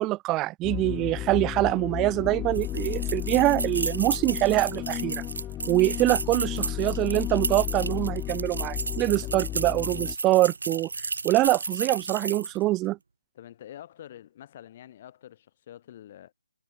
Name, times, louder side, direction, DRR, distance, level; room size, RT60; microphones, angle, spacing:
voice 1, 0.0-5.2 5.7-10.9 11.2-13.0, right 18 dB, 20° right, 1.1 m, -24 dB
sound 1, 0.6-10.1, left 13 dB, 15° left, 2.9 m, -33 dB
sound 2, 2.6-12.6, right 4 dB, 80° right, 2.0 m, -33 dB
voice 2, 13.3-16.3, left 11 dB, 40° left, 7.4 m, -46 dB
figure-of-eight pair, 150°, 0 cm